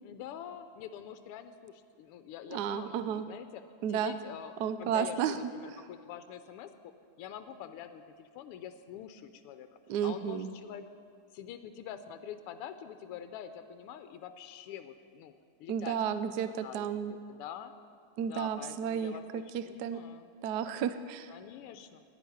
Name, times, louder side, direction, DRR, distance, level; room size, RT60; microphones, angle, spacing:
voice 1, 0.0-3.6 3.9-6.7 7.2-9.7 10.0-10.9 11.3-15.3 15.6-16.0 16.6-17.7 18.2-20.3 21.3-22.0, left 9 dB, 90° left, 10 dB, 1.6 m, -45 dB
voice 2, 2.5-3.2 3.8-4.1 4.6-5.4 9.9-10.5 15.7-17.1 18.2-20.0 20.4-21.3, right 8 dB, 80° right, 11 dB, 0.9 m, -32 dB
10.0 x 10.0 x 9.3 m, 2.3 s
omnidirectional pair, 2.4 m